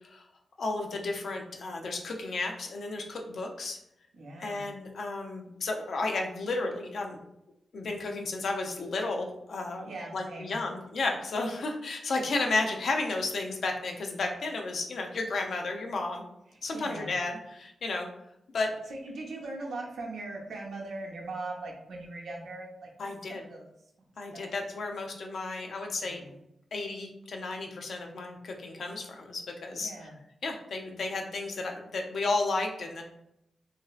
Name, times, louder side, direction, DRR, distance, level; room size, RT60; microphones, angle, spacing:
voice 1, 0.6-3.8 4.4-7.2 7.7-16.2 16.6-18.1 18.5-18.8 23.0-23.4 24.2-26.2 26.7-29.9 30.4-33.0, left 3 dB, 70° left, 2 dB, 0.5 m, -33 dB
voice 2, 4.1-4.7 9.9-10.6 16.5-17.2 18.9-23.1 23.4-23.7 24.3-24.5 26.0-26.4 29.8-30.2, right 2 dB, 85° right, -1 dB, 0.6 m, -40 dB
3.0 x 2.6 x 2.4 m, 0.81 s
cardioid pair, 65°, 0 cm